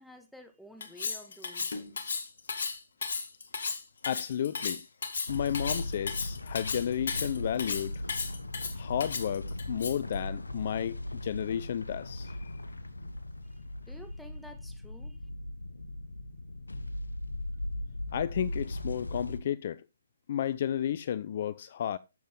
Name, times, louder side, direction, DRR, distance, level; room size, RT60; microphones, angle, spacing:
voice 1, 0.0-2.2 13.5-15.2, equal, ahead, 1.8 m, -52 dB
Cutlery silverware, 0.8-10.1, left 5 dB, 60° left, 2.0 m, -35 dB
voice 2, 4.1-4.8 5.3-8.0 8.8-12.5 18.1-19.8 20.3-22.0, left 9 dB, 45° left, 0.5 m, -32 dB
sound 1, 5.3-19.4, left 1 dB, 85° left, 1.6 m, -38 dB
12.0 x 7.4 x 3.8 m
figure-of-eight pair, 140°, 0 cm